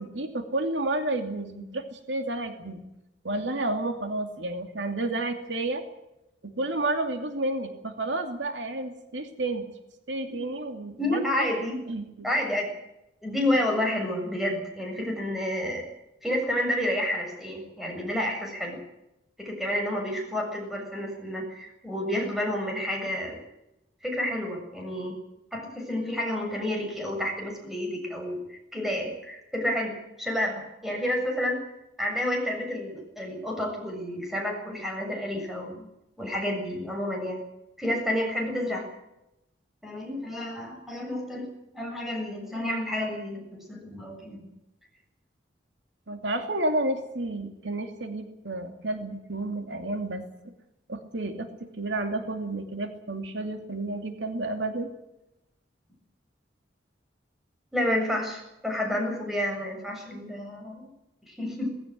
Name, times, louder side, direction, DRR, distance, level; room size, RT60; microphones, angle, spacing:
voice 1, 0.0-2.8 3.2-5.8 6.4-9.7 10.1-11.5 11.9-12.3 46.1-50.2 50.9-54.9, right 2 dB, 80° right, 6 dB, 2.6 m, -31 dB
voice 2, 11.0-11.8 12.2-12.7 13.2-15.8 16.2-18.8 19.4-23.4 24.0-25.1 25.5-31.6 32.0-35.9 36.2-37.4 37.8-38.9 39.8-44.4 57.7-60.9 61.3-61.7, left 1 dB, ahead, 1 dB, 7.3 m, -30 dB
19.0 x 16.5 x 9.3 m, 0.88 s
head